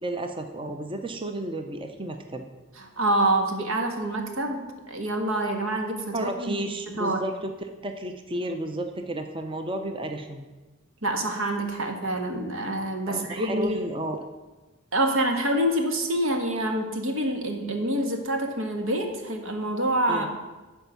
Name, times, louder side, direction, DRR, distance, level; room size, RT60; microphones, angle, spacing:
voice 1, 0.0-2.4 6.1-10.4 13.1-14.3 20.1-20.3, right 1 dB, 25° right, 5 dB, 0.7 m, -32 dB
voice 2, 2.8-7.2 11.0-13.8 14.9-20.3, right 1 dB, 85° right, 4 dB, 1.6 m, -26 dB
11.5 x 4.6 x 8.0 m, 1.2 s
head